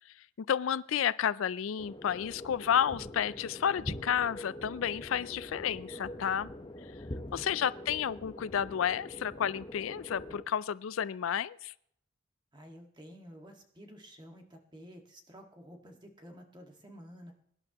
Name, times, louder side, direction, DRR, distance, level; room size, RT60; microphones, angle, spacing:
voice 1, 0.4-6.5 7.3-11.7, left 8 dB, 85° left, 18 dB, 0.4 m, -31 dB
sound 1, 1.8-10.4, left 1 dB, 25° left, 1.0 m, -44 dB
voice 2, 7.1-7.5 12.5-17.3, equal, 20° right, 3 dB, 1.7 m, -51 dB
23.0 x 11.0 x 2.9 m, 0.72 s
head